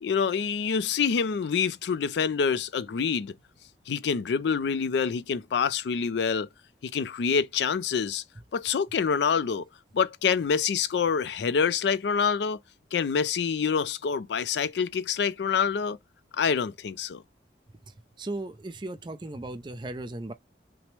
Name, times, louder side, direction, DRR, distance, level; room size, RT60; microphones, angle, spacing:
voice 1, 0.0-3.3 3.9-6.5 6.8-8.2 8.5-9.6 9.9-12.6 12.9-16.0 16.3-17.2, left 6 dB, 75° left, 0.4 m, -26 dB
voice 2, 18.2-20.3, right 2 dB, 25° right, 0.4 m, -36 dB
5.9 x 2.1 x 3.2 m
head